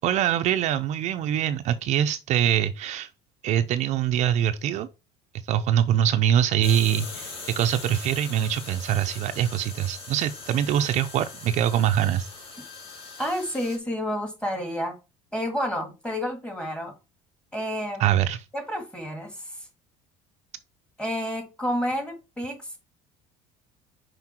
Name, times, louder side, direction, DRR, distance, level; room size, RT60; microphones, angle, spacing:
voice 1, 0.0-3.1 3.4-4.9 5.5-12.3 18.0-18.4, right 10 dB, 50° right, 0.5 m, -23 dB
sound 1, 6.6-13.8, left 4 dB, 40° left, 2.4 m, -41 dB
voice 2, 13.2-15.0 15.3-16.9 17.5-18.1 18.5-19.4 21.0-22.8, equal, 5° left, 1.8 m, -30 dB
5.9 x 5.1 x 4.4 m
cardioid pair, 145°, 15 cm